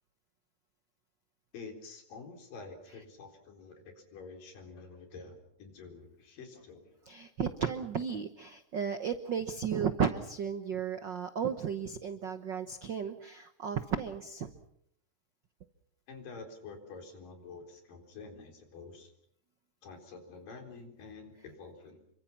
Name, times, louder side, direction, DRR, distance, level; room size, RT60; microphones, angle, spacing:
voice 1, 1.5-7.0 16.1-19.1 19.8-22.0, left 4 dB, 85° left, 4 dB, 5.7 m, -48 dB
voice 2, 7.1-14.5, right 7 dB, 80° right, 9 dB, 1.0 m, -34 dB
29.0 x 24.0 x 6.0 m, 0.71 s
omnidirectional pair, 3.8 m